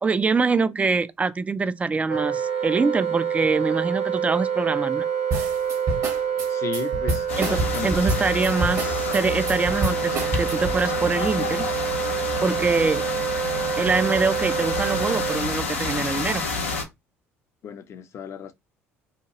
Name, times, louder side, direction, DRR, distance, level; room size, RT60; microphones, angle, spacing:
voice 1, 0.0-5.1 7.4-11.7 12.1-13.0 13.8-16.5, right 4 dB, 20° right, 0.4 m, -24 dB
Wind instrument woodwind instrument, 2.1-15.4, right 7 dB, 75° right, 0.6 m, -27 dB
sound 1, 5.3-10.8, right 2 dB, 50° right, 1.1 m, -27 dB
voice 2, 6.5-8.0 17.6-18.5, left 7 dB, 45° left, 0.6 m, -35 dB
sound 2, 7.3-16.8, left 3 dB, 80° left, 0.6 m, -29 dB
2.8 x 2.3 x 2.8 m
figure-of-eight pair, 60°, 7 cm